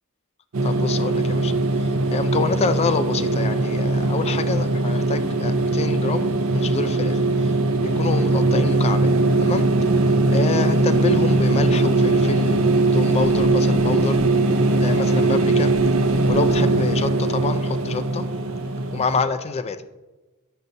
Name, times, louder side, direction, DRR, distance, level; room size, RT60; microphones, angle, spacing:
sound 1, 0.5-19.2, right 2 dB, 65° right, 0.5 m, -20 dB
voice 1, 0.6-9.1 9.4-9.7 10.0-14.2 14.8-15.7 16.3-18.2 18.9-19.8, left 4 dB, 30° left, 11 dB, 0.3 m, -27 dB
8.3 x 6.6 x 2.6 m, 1.1 s
head